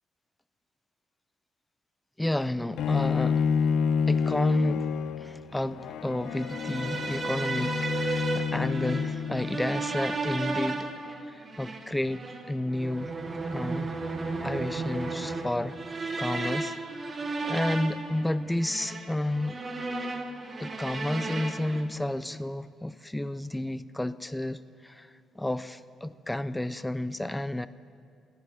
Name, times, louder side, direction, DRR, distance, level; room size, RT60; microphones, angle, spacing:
voice 1, 2.2-3.5 4.0-10.9 11.3-13.1 13.5-13.9 14.4-16.8 17.1-17.2 17.4-19.6 20.6-27.7, left 1 dB, 5° left, 15 dB, 0.3 m, -31 dB
Bowed string instrument, 2.8-9.8, left 6 dB, 70° left, 0.5 m, -29 dB
sound 1, 6.3-21.8, right 3 dB, 25° right, 1.1 m, -34 dB
13.0 x 10.5 x 9.5 m, 2.3 s
cardioid pair, 150°, 0 cm